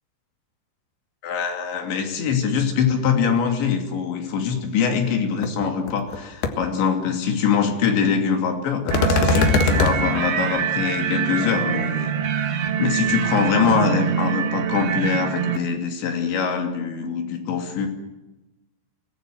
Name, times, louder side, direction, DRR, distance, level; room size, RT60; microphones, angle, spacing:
voice 1, 1.2-12.1 12.8-17.9, left 6 dB, 85° left, 5 dB, 5.1 m, -23 dB
sound 1, 5.4-5.5 5.9-6.2 6.4-6.5 8.9-10.0, left 5 dB, 70° left, 3.5 m, -20 dB
sound 2, 8.9-15.6, right 8 dB, 50° right, 2.1 m, -24 dB
25.0 x 19.0 x 7.7 m, 1.0 s
omnidirectional pair, 5.0 m